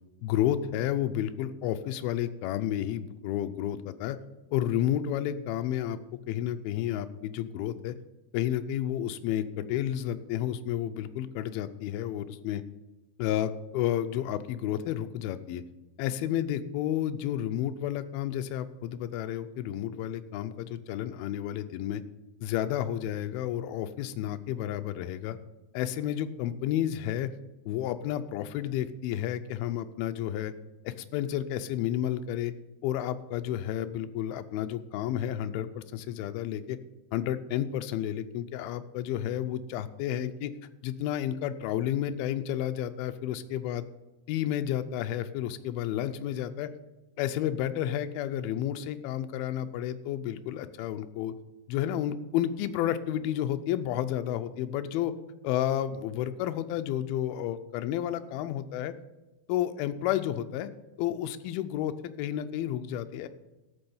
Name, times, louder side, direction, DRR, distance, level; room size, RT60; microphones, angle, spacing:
voice 1, 0.2-4.2 4.5-6.0 6.3-8.0 8.3-12.6 13.2-15.6 16.0-22.0 22.4-25.4 25.7-27.3 27.7-30.5 30.8-32.5 32.8-36.8 37.1-40.5 40.8-43.9 44.3-46.7 47.2-51.3 51.7-55.1 55.4-58.9 59.5-60.7 61.0-63.3, left 11 dB, 80° left, 10 dB, 2.4 m, -31 dB
13.5 x 6.2 x 7.0 m, 1.1 s
omnidirectional pair, 4.6 m